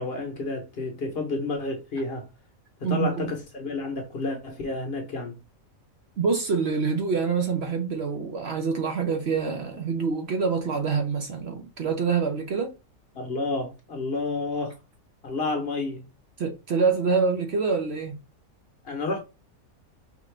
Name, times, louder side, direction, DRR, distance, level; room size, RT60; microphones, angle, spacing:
voice 1, 0.0-2.3 2.8-5.4 13.1-14.8 15.2-16.0 18.8-19.2, left 3 dB, 50° left, 0.9 m, -30 dB
voice 2, 2.8-3.3 6.2-12.7 16.4-18.2, right 5 dB, 60° right, 0.8 m, -26 dB
5.0 x 2.5 x 3.2 m
omnidirectional pair, 1.5 m